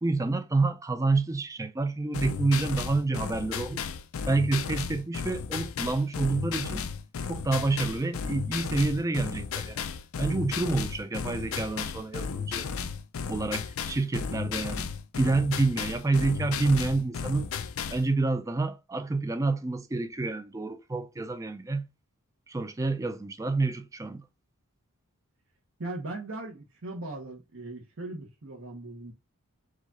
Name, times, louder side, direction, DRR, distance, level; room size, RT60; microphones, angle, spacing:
voice 1, 0.0-3.8 4.3-6.9 7.3-9.9 10.2-12.7 13.3-14.9 15.2-17.5 17.9-21.9 22.5-24.2, right 3 dB, 15° right, 0.4 m, -28 dB
sound 1, 2.1-18.1, left 6 dB, 70° left, 0.5 m, -34 dB
voice 2, 25.8-29.1, right 2 dB, 65° right, 1.0 m, -39 dB
4.9 x 2.4 x 4.0 m
head